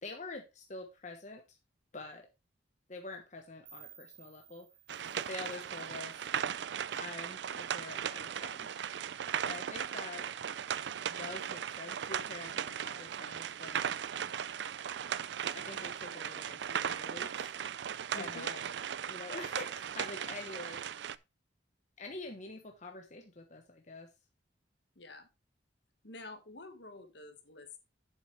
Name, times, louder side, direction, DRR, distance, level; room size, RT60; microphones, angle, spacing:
voice 1, 0.0-1.6 1.9-2.3 2.9-4.7 5.2-6.3 6.9-8.7 9.4-10.3 11.2-13.8 15.5-17.5 18.1-18.6 19.0-20.8 22.0-24.1, left 3 dB, 40° left, 3 dB, 1.2 m, -46 dB
sound 1, 3.7-6.6, right 8 dB, 85° right, 2.9 m, -58 dB
sound 2, 4.9-21.2, right 8 dB, 65° right, 0.4 m, -37 dB
voice 2, 18.2-18.5 24.9-25.3 26.0-27.8, left 2 dB, 65° left, 7 dB, 1.7 m, -48 dB
8.2 x 7.6 x 3.3 m, 0.25 s
head